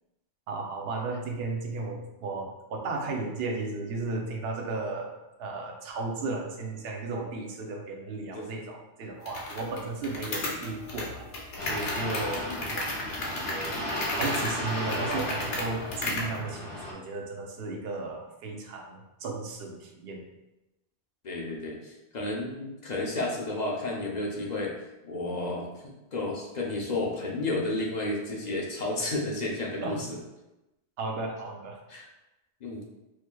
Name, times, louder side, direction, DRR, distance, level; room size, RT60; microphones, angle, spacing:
voice 1, 0.5-5.1 5.4-12.4 12.7-20.2 29.8-30.0 31.0-31.8, right 3 dB, 65° right, 0 dB, 0.9 m, -35 dB
sound 1, 9.3-16.4, left 2 dB, 85° left, 1.1 m, -35 dB
sound 2, 11.6-16.9, left 1 dB, 25° left, 1.2 m, -34 dB
voice 2, 12.3-12.7 21.2-24.7 25.0-30.2 31.9-32.1 32.6-32.8, left 2 dB, 45° left, -2 dB, 0.6 m, -32 dB
4.7 x 2.9 x 2.2 m, 0.98 s
omnidirectional pair, 1.1 m